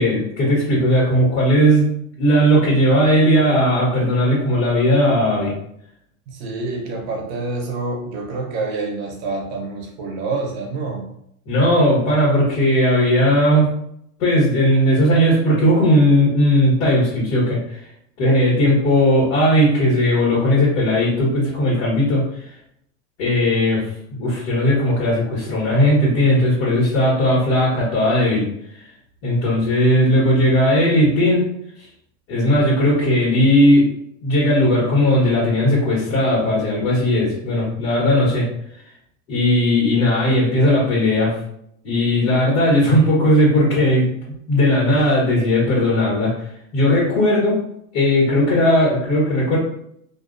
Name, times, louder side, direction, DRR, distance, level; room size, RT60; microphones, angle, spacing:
voice 1, 0.0-1.9 2.2-5.5 11.5-13.7 14.2-17.8 18.2-22.2 23.2-23.9 24.2-28.5 29.2-31.5 32.3-33.9 34.2-38.5 39.3-41.4 41.8-44.1 44.5-46.4 46.7-47.6 47.9-49.6, equal, 60° left, -5 dB, 1.3 m, -17 dB
voice 2, 6.3-11.1, right 3 dB, 50° right, 1 dB, 0.7 m, -27 dB
2.5 x 2.1 x 2.5 m, 0.72 s
supercardioid pair, 135°, 42 cm